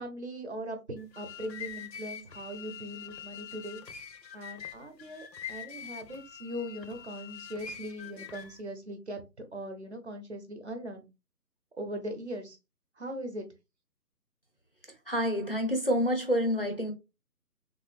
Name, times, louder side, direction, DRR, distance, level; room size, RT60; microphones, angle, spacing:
voice 1, 0.0-3.8 4.3-9.2 9.5-11.0 11.8-12.6 13.0-13.5, equal, 45° right, 0.7 m, -40 dB
sound 1, 1.0-8.6, left 8 dB, 90° left, 0.6 m, -44 dB
voice 2, 15.1-16.9, equal, 40° left, 0.5 m, -28 dB
3.4 x 2.4 x 2.4 m
figure-of-eight pair, 150°, 49 cm